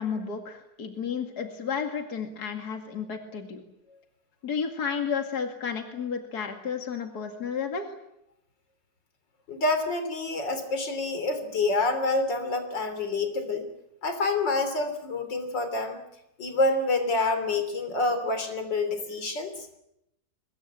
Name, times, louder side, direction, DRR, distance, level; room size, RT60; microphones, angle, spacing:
voice 1, 0.0-3.6 4.4-8.0, left 6 dB, 60° left, 5 dB, 2.7 m, -32 dB
voice 2, 9.5-13.7 14.0-16.0 16.4-19.7, left 2 dB, 90° left, 8 dB, 4.0 m, -27 dB
24.0 x 21.5 x 8.8 m, 0.82 s
omnidirectional pair, 1.9 m